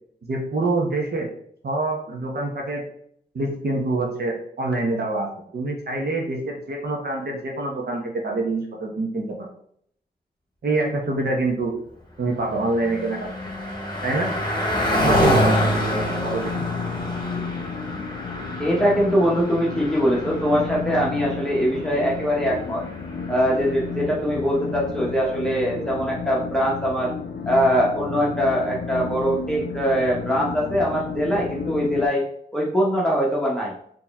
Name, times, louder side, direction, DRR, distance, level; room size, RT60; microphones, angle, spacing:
voice 1, 0.3-1.3 1.6-2.8 3.3-9.5 10.6-11.7 12.2-13.3 14.0-14.4 15.0-16.7, right 2 dB, 70° right, 0 dB, 1.0 m, -26 dB
Car passing by, 12.1-23.8, equal, 25° left, 1.2 m, -27 dB
sound 1, 15.3-32.1, left 5 dB, 75° left, 0.5 m, -32 dB
voice 2, 18.6-22.8 23.3-27.1 27.5-32.2 32.5-33.7, equal, 5° left, -4 dB, 1.0 m, -22 dB
4.5 x 3.0 x 3.5 m, 0.65 s
wide cardioid pair, 85°, 17 cm